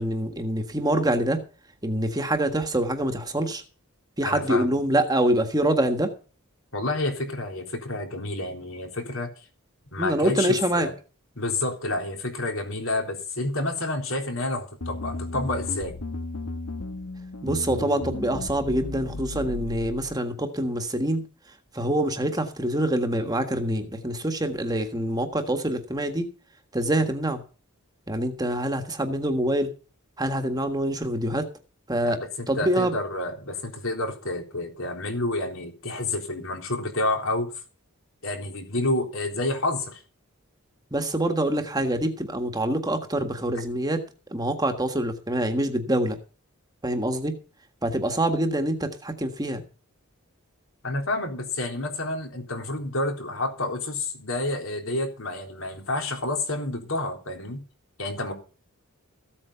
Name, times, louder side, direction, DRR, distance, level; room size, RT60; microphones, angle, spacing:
voice 1, 0.0-1.4 1.8-3.6 4.2-6.1 10.0-10.9 17.4-21.2 21.7-26.3 26.7-27.4 28.1-29.7 30.2-31.5 31.9-32.2 32.5-32.9 40.9-44.0 44.3-46.2 46.8-47.3 47.8-49.6, right 1 dB, 15° right, 6 dB, 1.6 m, -25 dB
voice 2, 4.2-4.7 6.7-9.3 9.9-10.9 11.4-16.0 32.0-37.5 38.2-40.0 50.8-57.6 58.0-58.3, left 2 dB, 65° left, 4 dB, 3.7 m, -29 dB
sound 1, 14.8-20.1, left 2 dB, 80° left, 1.4 m, -34 dB
15.0 x 8.6 x 5.6 m, 0.36 s
head